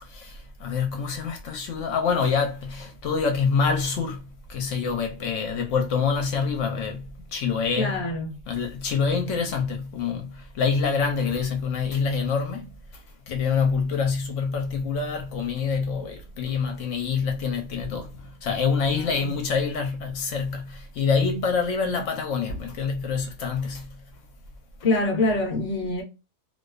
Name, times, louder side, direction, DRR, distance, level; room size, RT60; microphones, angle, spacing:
voice 1, 0.0-8.0 8.5-12.7 13.3-24.0, left 5 dB, 65° left, 0.9 m, -26 dB
voice 2, 7.8-8.4 19.0-19.3 24.8-26.0, left 2 dB, 25° left, 0.9 m, -25 dB
2.4 x 2.3 x 2.3 m
omnidirectional pair, 1.6 m